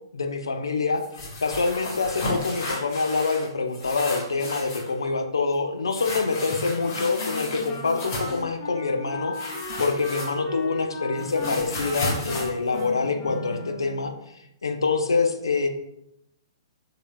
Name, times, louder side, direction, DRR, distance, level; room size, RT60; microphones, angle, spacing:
voice 1, 0.1-1.0 1.4-9.4 9.8-14.1 14.6-15.7, left 4 dB, 75° left, 6 dB, 0.7 m, -26 dB
sound 1, 1.0-3.5 3.7-4.9 5.9-8.4 9.3-10.6 10.9-13.6, left 1 dB, 50° left, 2.1 m, -34 dB
Wind instrument woodwind instrument, 6.7-14.1, left 1 dB, 30° left, 2.1 m, -37 dB
6.9 x 5.8 x 2.3 m, 0.82 s
figure-of-eight pair, 120°, 2 cm